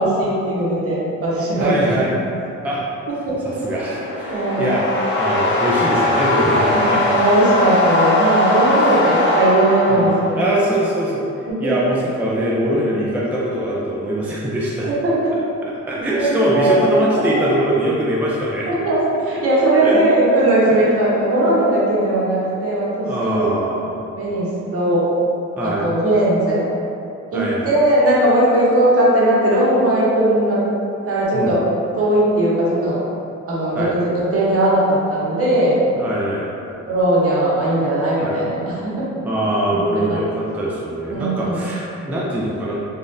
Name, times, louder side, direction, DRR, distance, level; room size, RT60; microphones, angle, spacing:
voice 1, 0.0-1.9 3.1-3.4 4.3-4.7 6.7-10.5 11.5-11.7 14.8-15.1 16.1-16.9 18.7-19.0 19.2-23.6 24.1-25.1 25.6-26.7 27.3-30.6 31.0-31.6 31.9-33.0 33.5-35.8 36.8-39.1 39.7-39.8 40.1-40.2 41.1-41.6, right 1 dB, 50° right, -7 dB, 1.0 m, -18 dB
voice 2, 1.6-2.1 2.6-2.8 3.4-4.9 5.2-7.2 8.6-9.0 9.9-10.1 10.4-14.9 15.9-18.7 19.8-20.0 20.7-20.8 23.0-24.0 25.6-25.9 27.3-27.8 31.3-31.6 33.7-33.9 36.0-36.5 38.2-38.4 39.2-42.9, right 1 dB, 5° right, -6 dB, 0.4 m, -22 dB
sound 1, 3.5-10.6, left 1 dB, 40° left, 0.6 m, -20 dB
3.6 x 2.4 x 2.6 m, 2.7 s
cardioid pair, 90°, 30 cm